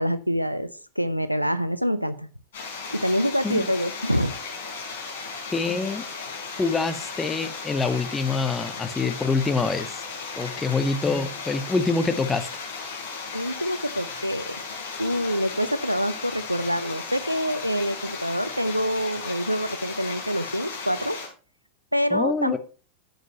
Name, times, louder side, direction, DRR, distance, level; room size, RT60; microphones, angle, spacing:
voice 1, 0.0-2.3 2.9-4.3 13.3-14.6 15.0-21.2 21.9-22.6, equal, 90° right, 0.5 m, -26 dB
sound 1, 2.5-21.3, left 4 dB, 60° left, 4.6 m, -36 dB
voice 2, 5.5-6.0 6.6-10.0 10.3-12.5 22.1-22.6, left 4 dB, 10° left, 0.9 m, -25 dB
12.5 x 8.0 x 2.9 m
figure-of-eight pair, 90°, 0 cm